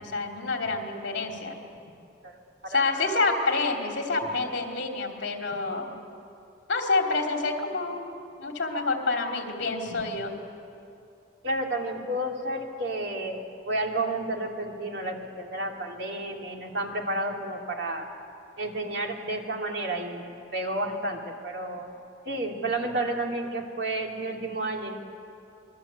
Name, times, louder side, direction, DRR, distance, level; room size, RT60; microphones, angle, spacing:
voice 1, 0.0-1.6 2.7-5.9 6.7-8.1 8.4-10.3, left 3 dB, 65° left, 2 dB, 3.1 m, -28 dB
voice 2, 2.6-3.2 4.2-4.3 9.9-10.0 11.4-13.4 13.7-18.1 18.6-20.3 20.5-21.9 22.2-24.9, right 1 dB, 60° right, 1 dB, 2.9 m, -31 dB
26.5 x 21.0 x 8.3 m, 2.6 s
head